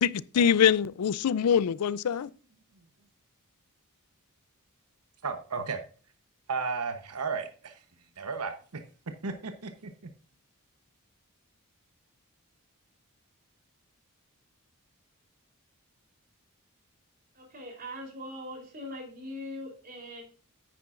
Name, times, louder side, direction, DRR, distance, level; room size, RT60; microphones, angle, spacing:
voice 1, 0.0-2.3, left 8 dB, 85° left, 0.4 m, -24 dB
voice 2, 5.2-5.8 6.5-7.8 8.2-8.8 9.2-9.9, right 4 dB, 80° right, 1.0 m, -34 dB
voice 3, 17.3-20.2, left 1 dB, 40° right, 3.6 m, -41 dB
9.7 x 9.2 x 2.5 m
head